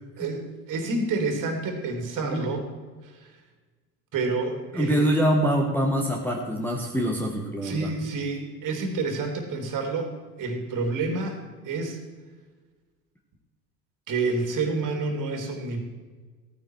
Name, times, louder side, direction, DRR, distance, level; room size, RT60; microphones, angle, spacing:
voice 1, 0.2-2.6 3.0-3.3 4.1-5.1 7.6-10.1 10.4-12.0 14.1-15.8, right 3 dB, 40° right, 4 dB, 3.0 m, -29 dB
voice 2, 4.8-7.9, equal, 5° left, -2 dB, 1.5 m, -24 dB
15.0 x 9.8 x 4.6 m, 1.4 s
hypercardioid pair, 85°, 49 cm